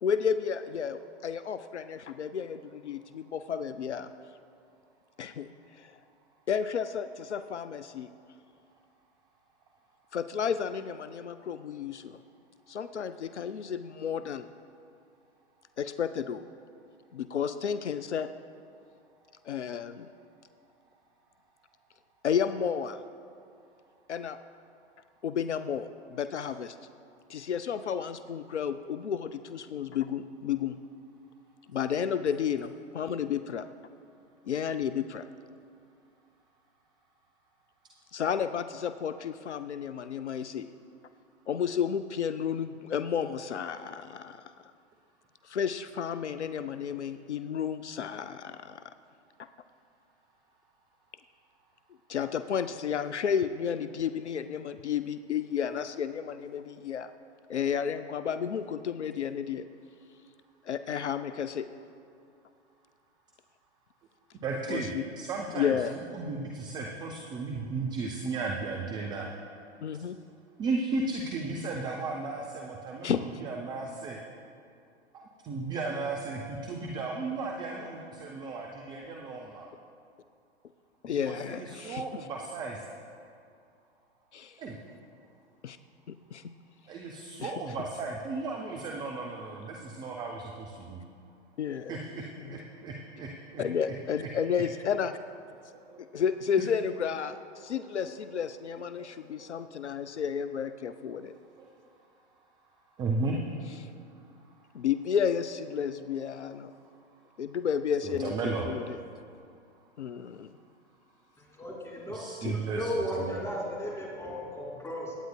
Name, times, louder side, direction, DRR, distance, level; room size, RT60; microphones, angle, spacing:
voice 1, 0.0-4.1 5.2-6.0 6.5-8.1 10.1-12.2 12.7-14.5 15.8-16.4 17.1-18.3 19.5-20.1 22.2-23.0 24.1-24.4 25.2-26.8 27.3-30.8 31.7-33.7 34.4-35.2 38.1-40.7 41.5-44.4 45.4-48.8 49.4-49.5 52.1-57.1 57.5-59.7 60.6-61.7 64.7-65.0 65.5-65.9 69.8-70.2 73.0-73.3 81.0-82.0 84.3-84.6 85.6-85.8 86.3-86.4 87.4-87.5 91.6-92.0 92.5-92.6 93.6-95.2 96.0-101.3 104.7-106.7 107.4-109.0 110.0-110.5 112.4-112.5, left 7 dB, 75° left, 11 dB, 0.5 m, -32 dB
voice 2, 64.4-69.3 70.6-74.2 75.1-79.7 81.1-82.8 84.6-84.8 86.9-91.0 91.9-93.6 95.9-96.0 97.6-97.8 99.0-99.1 99.4-99.5 101.6-101.7 103.0-103.4 108.0-108.7 112.1-113.5, right 3 dB, 10° right, 0 dB, 0.5 m, -35 dB
voice 3, 111.6-112.2 112.7-115.1, equal, 10° left, -4 dB, 2.8 m, -35 dB
23.5 x 9.2 x 2.3 m, 2.4 s
figure-of-eight pair, 105°, 35 cm